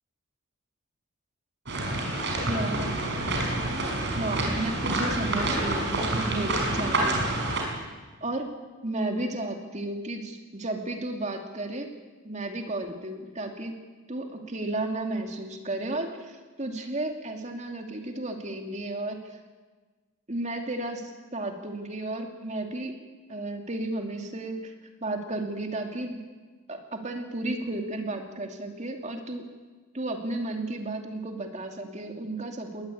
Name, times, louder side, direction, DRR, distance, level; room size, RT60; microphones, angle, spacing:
sound 1, 1.6-7.6, right 2 dB, 55° right, 5.3 m, -28 dB
voice 1, 2.4-3.0 4.1-7.2 8.2-8.5 8.8-11.9 12.2-13.7 14.1-19.4 20.3-23.0 23.3-24.7 25.0-26.2 26.7-29.4 29.9-32.9, right 2 dB, 35° right, 4 dB, 2.6 m, -33 dB
21.0 x 19.5 x 8.6 m, 1.4 s
head